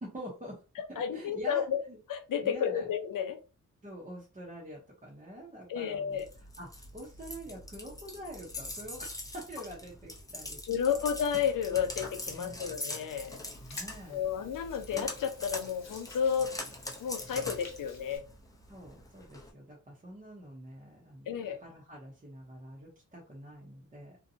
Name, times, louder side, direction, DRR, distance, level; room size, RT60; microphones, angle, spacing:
voice 1, 0.0-0.6 0.9-2.0 2.4-2.9 3.8-11.1 12.3-12.7 13.6-14.3 18.7-21.3 21.6-24.2, equal, 25° right, -4 dB, 0.7 m, -46 dB
voice 2, 0.8-1.8 2.1-3.4 5.7-6.3 10.7-13.4 14.1-16.5 17.0-18.2 21.3-21.6, left 8 dB, 75° left, 7 dB, 0.5 m, -32 dB
sound 1, 6.1-19.5, left 1 dB, 10° left, 0.5 m, -43 dB
Hands, 13.1-18.2, left 3 dB, 55° left, 0.9 m, -52 dB
2.7 x 2.2 x 2.6 m, 0.32 s
wide cardioid pair, 115°, 33 cm